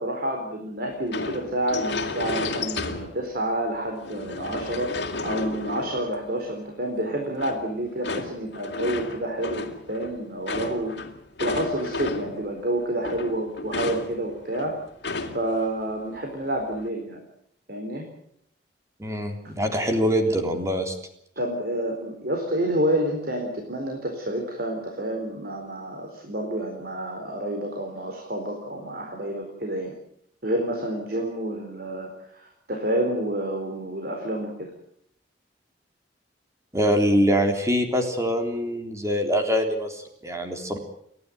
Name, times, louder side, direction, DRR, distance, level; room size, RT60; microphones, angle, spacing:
voice 1, 0.0-11.0 11.4-14.7 15.3-17.2 17.7-18.1 19.8-20.0 21.4-29.9 30.4-32.1 32.4-34.7, right 1 dB, 55° right, 2 dB, 4.4 m, -29 dB
sound 1, 1.1-3.4 3.8-6.4 7.4-12.5 12.8-15.6 15.9-16.0 16.5-16.9, left 3 dB, 70° left, 3.0 m, -33 dB
voice 2, 19.0-21.0 36.7-40.8, equal, 15° right, 4 dB, 3.6 m, -24 dB
30.0 x 12.5 x 9.3 m, 0.72 s
head